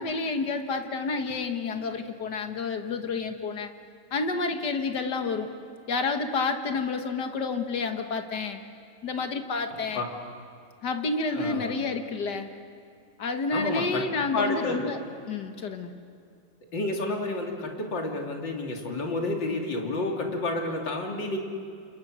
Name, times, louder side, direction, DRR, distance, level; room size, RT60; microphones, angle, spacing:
voice 1, 0.0-3.7 4.1-5.5 5.9-8.6 9.0-10.0 10.8-12.5 13.2-15.0 15.3-16.0, left 4 dB, 65° left, 6 dB, 2.1 m, -29 dB
voice 2, 11.3-11.7 13.5-14.9 16.6-21.4, left 2 dB, 80° left, 1 dB, 3.5 m, -30 dB
29.0 x 28.0 x 6.4 m, 2.4 s
omnidirectional pair, 2.0 m